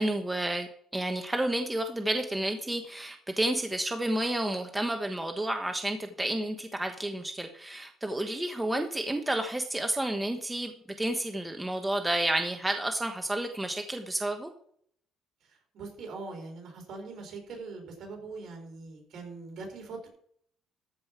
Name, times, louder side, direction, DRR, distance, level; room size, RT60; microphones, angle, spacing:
voice 1, 0.0-14.5, right 1 dB, 10° right, 5 dB, 1.2 m, -31 dB
voice 2, 15.4-20.1, right 3 dB, 65° right, 2 dB, 4.4 m, -42 dB
14.0 x 5.5 x 6.0 m, 0.63 s
cardioid pair, 95°, 0 cm